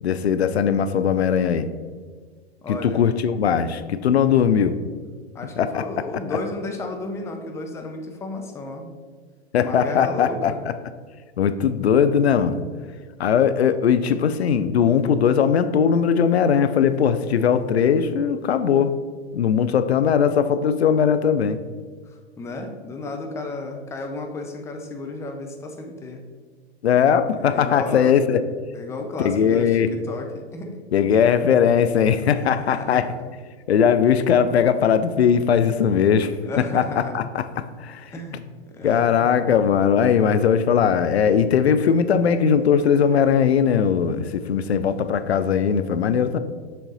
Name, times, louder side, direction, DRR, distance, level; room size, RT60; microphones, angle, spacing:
voice 1, 0.0-1.7 2.7-4.8 5.6-5.8 9.5-10.7 11.4-12.6 13.2-18.9 19.3-21.6 26.8-28.4 29.2-29.9 30.9-33.1 33.7-36.3 36.7-36.8 37.1-38.1 38.8-46.4, left 7 dB, 80° left, 11 dB, 0.5 m, -19 dB
voice 2, 2.6-3.1 5.3-9.0 9.6-10.6 22.1-26.2 27.4-28.2 28.7-30.8 32.7-33.2 36.4-37.2 38.1-39.3, left 2 dB, 10° left, 4 dB, 0.5 m, -33 dB
6.3 x 3.9 x 4.0 m, 1.5 s
figure-of-eight pair, 105°, 32 cm